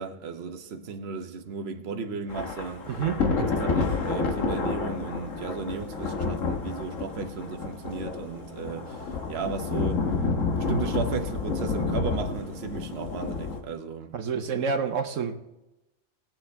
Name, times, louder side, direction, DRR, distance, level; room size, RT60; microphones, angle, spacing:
voice 1, 0.0-2.8 3.4-10.1 10.6-14.1, right 5 dB, 55° right, 1.1 m, -35 dB
Thunder / Rain, 2.3-13.6, left 4 dB, 80° left, 1.7 m, -29 dB
voice 2, 2.9-3.2 14.1-15.5, right 6 dB, 80° right, 1.2 m, -28 dB
18.5 x 7.8 x 3.4 m
omnidirectional pair, 1.3 m